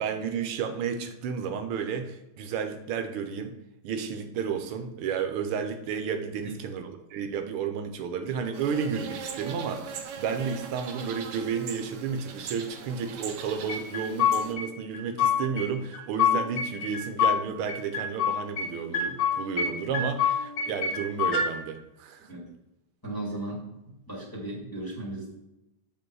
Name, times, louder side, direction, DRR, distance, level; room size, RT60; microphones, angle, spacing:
voice 1, 0.0-3.5 3.8-22.3, right 6 dB, 85° right, 7 dB, 1.6 m, -32 dB
sound 1, 8.5-14.5, right 6 dB, 65° right, 1.1 m, -40 dB
sound 2, 13.7-14.7 14.9-15.7 15.9-17.4 17.7-18.7 18.9-19.7 19.9-21.5, left 7 dB, 85° left, 2.5 m, -26 dB
voice 2, 23.0-25.3, right 1 dB, 10° left, -6 dB, 2.1 m, -36 dB
7.6 x 4.8 x 4.7 m, 0.92 s
omnidirectional pair, 2.4 m